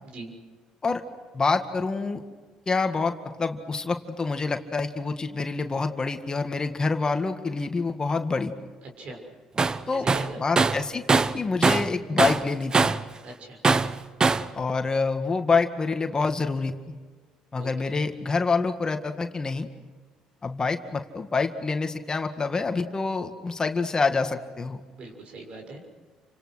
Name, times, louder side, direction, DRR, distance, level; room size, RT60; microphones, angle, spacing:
voice 1, 1.3-2.2 2.7-3.1 3.4-8.5 9.9-10.1 10.4-12.9 14.5-17.0 17.5-19.7 20.4-24.8, left 4 dB, 30° left, 6 dB, 1.9 m, -27 dB
Tools, 9.6-9.8 10.1-11.9 12.2-13.1 13.6-14.5, right 4 dB, 30° right, 1.0 m, -22 dB
voice 2, 9.9-10.4 13.2-13.6 17.5-17.7 25.0-25.8, right 2 dB, 55° right, 3 dB, 6.5 m, -40 dB
30.0 x 26.0 x 6.4 m, 1.4 s
hypercardioid pair, 60°, 2 cm